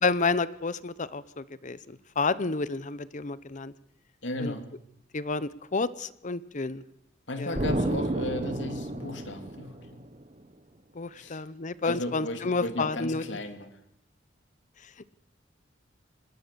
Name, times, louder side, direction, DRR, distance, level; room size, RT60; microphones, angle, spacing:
voice 1, 0.0-3.7 4.4-4.5 5.1-6.8 7.4-7.5 10.9-13.2, left 4 dB, 40° left, 16 dB, 0.8 m, -30 dB
voice 2, 4.2-4.7 7.3-10.0 11.1-11.5 11.8-13.8, left 1 dB, 75° left, 7 dB, 2.8 m, -35 dB
Explosion, 7.6-10.2, right 1 dB, 40° right, 1.3 m, -31 dB
25.5 x 20.0 x 6.9 m, 0.80 s
head